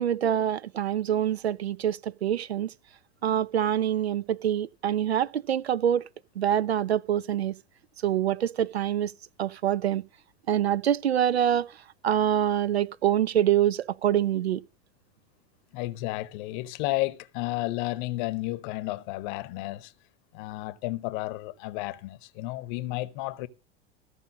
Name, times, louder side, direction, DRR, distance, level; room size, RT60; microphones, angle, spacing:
voice 1, 0.0-2.7 3.2-6.0 6.4-7.5 8.0-9.1 9.4-10.0 10.5-11.7 12.0-14.6, right 10 dB, 80° right, 0.5 m, -25 dB
voice 2, 15.7-19.9 20.3-23.5, left 18 dB, 50° left, 0.8 m, -32 dB
14.5 x 5.5 x 7.3 m
figure-of-eight pair, 80°, 31 cm